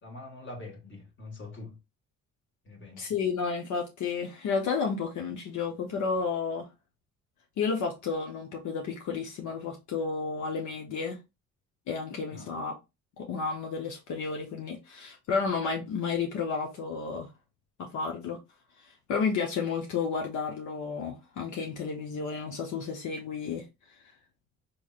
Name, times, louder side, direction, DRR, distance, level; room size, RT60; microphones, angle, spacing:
voice 1, 0.0-1.8 2.6-3.1 12.3-12.5, left 2 dB, 40° left, 1.6 m, -44 dB
voice 2, 3.0-6.7 7.6-11.2 11.9-12.8 13.2-17.3 17.8-18.4 18.8-23.6, left 5 dB, 75° left, 0.9 m, -32 dB
4.2 x 3.1 x 2.4 m
cardioid pair, 90°, 30 cm